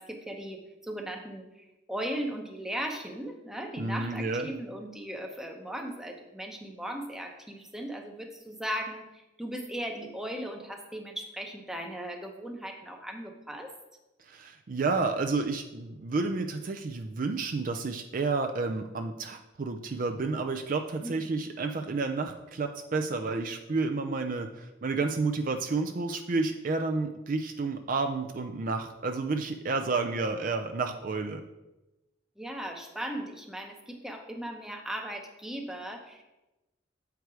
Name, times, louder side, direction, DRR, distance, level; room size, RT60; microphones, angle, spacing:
voice 1, 0.0-13.7 21.0-21.2 32.4-36.2, right 1 dB, 5° right, 3 dB, 0.7 m, -37 dB
voice 2, 3.8-4.4 14.3-31.4, right 3 dB, 45° right, 5 dB, 0.4 m, -30 dB
7.9 x 4.7 x 4.7 m, 1.0 s
head